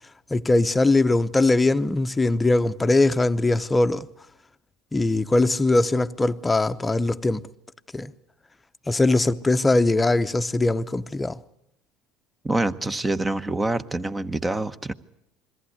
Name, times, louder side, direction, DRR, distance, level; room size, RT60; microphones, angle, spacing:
voice 1, 0.3-4.1 4.9-7.4 7.9-8.1 8.9-11.4, left 2 dB, 15° left, 0.8 m, -21 dB
voice 2, 12.4-14.9, right 2 dB, 15° right, 1.0 m, -26 dB
22.0 x 14.5 x 9.6 m
supercardioid pair, 95°, 0 cm